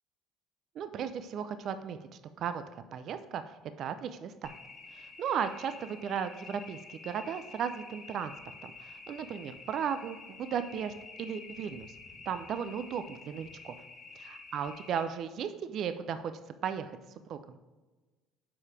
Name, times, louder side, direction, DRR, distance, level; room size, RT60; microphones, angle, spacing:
voice 1, 0.8-2.0 2.4-2.6 2.9-4.5 4.9-8.3 8.6-11.9 12.3-13.8 14.3-17.0 17.3-17.6, right 7 dB, 60° right, 10 dB, 0.5 m, -36 dB
sound 1, 4.4-15.0, left 4 dB, 45° left, 2.3 m, -49 dB
7.0 x 4.9 x 4.8 m, 1.2 s
supercardioid pair, 85°, 0 cm